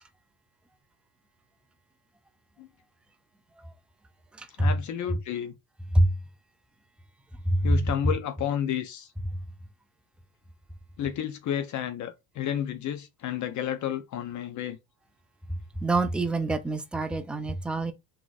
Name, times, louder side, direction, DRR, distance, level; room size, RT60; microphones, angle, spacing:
voice 1, 4.6-5.5 7.6-9.1 11.0-14.8, left 10 dB, 45° left, 0.6 m, -31 dB
voice 2, 15.8-17.9, right 1 dB, 5° right, 0.4 m, -25 dB
3.9 x 2.9 x 2.4 m
supercardioid pair, 105°, 40 cm